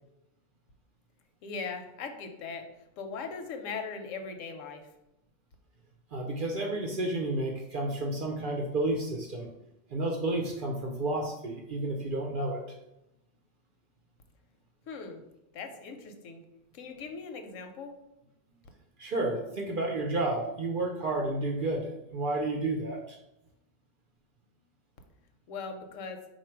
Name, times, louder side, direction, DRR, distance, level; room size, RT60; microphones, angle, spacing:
voice 1, 1.4-2.7 3.0-4.8 14.9-15.2 15.5-16.4 16.7-17.9 25.5-26.2, left 5 dB, 85° left, 6 dB, 1.0 m, -39 dB
voice 2, 6.1-9.5 9.9-12.6 19.0-23.2, right 2 dB, 55° right, 1 dB, 0.6 m, -31 dB
4.2 x 2.4 x 4.4 m, 0.88 s
omnidirectional pair, 1.3 m